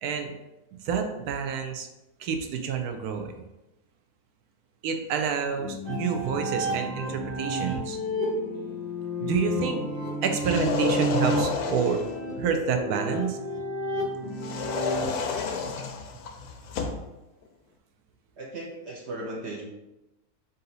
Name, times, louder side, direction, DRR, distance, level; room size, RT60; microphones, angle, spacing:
voice 1, 0.0-0.3 0.8-1.9 2.2-3.3 4.8-8.0 9.2-9.8 10.2-12.0 12.4-13.4, right 6 dB, 80° right, 5 dB, 1.1 m, -28 dB
sound 1, 5.6-11.5 11.8-13.0 14.2-14.7, left 5 dB, 65° left, 0.7 m, -41 dB
sound 2, 5.9-15.0, equal, 40° right, 1.2 m, -31 dB
sound 3, 10.3-12.2 14.4-17.1, left 5 dB, 85° left, 1.1 m, -30 dB
voice 2, 18.4-19.6, right 1 dB, 60° right, -2 dB, 0.8 m, -36 dB
4.1 x 2.7 x 3.9 m, 0.98 s
omnidirectional pair, 1.6 m